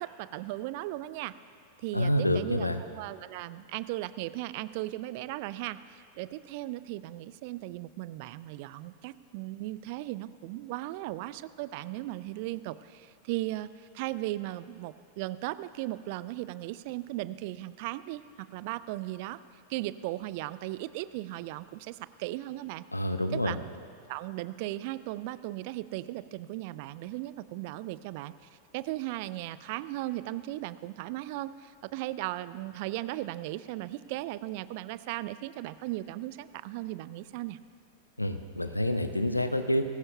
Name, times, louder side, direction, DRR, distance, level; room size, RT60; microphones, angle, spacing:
voice 1, 0.0-1.3 1.8-19.4 19.7-22.8 23.3-23.6 24.1-37.6, right 16 dB, 50° right, 16 dB, 0.4 m, -37 dB
voice 2, 1.9-2.8 22.9-23.5 38.2-39.8, left 1 dB, 85° left, 8 dB, 0.6 m, -28 dB
20.5 x 16.5 x 2.3 m, 2.3 s
figure-of-eight pair, 90°, 0 cm